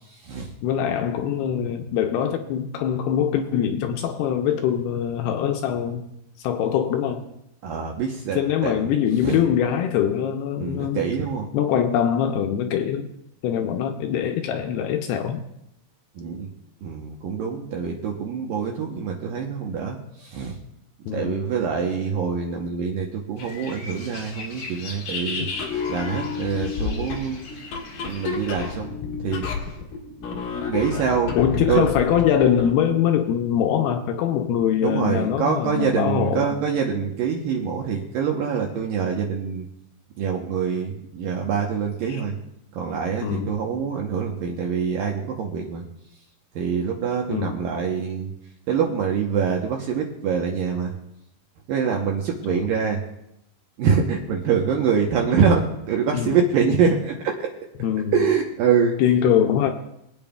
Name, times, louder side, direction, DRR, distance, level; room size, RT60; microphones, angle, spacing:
voice 1, 0.6-6.0 6.4-7.2 8.3-11.1 11.5-13.1 13.4-15.4 21.1-21.4 25.4-25.5 31.4-36.5 42.1-42.2 43.2-43.6 47.3-47.6 52.5-52.7 56.1-56.3 57.8-58.2 59.0-59.7, left 9 dB, 80° left, 5 dB, 2.6 m, -23 dB
voice 2, 7.6-8.8 9.2-9.4 10.6-11.5 16.2-16.5 16.8-20.5 21.1-25.5 25.9-27.4 28.0-28.9 29.2-29.5 30.7-31.4 31.7-31.9 34.8-39.6 40.2-42.4 42.7-45.8 46.6-48.3 48.7-50.9 51.7-53.0 53.8-57.3 58.1-59.0, right 6 dB, 70° right, 0 dB, 2.2 m, -25 dB
sound 1, 23.4-28.8, left 3 dB, 40° left, 3.3 m, -37 dB
sound 2, 25.5-32.8, left 5 dB, 65° left, 2.8 m, -30 dB
25.5 x 8.8 x 2.3 m, 0.80 s
omnidirectional pair, 4.8 m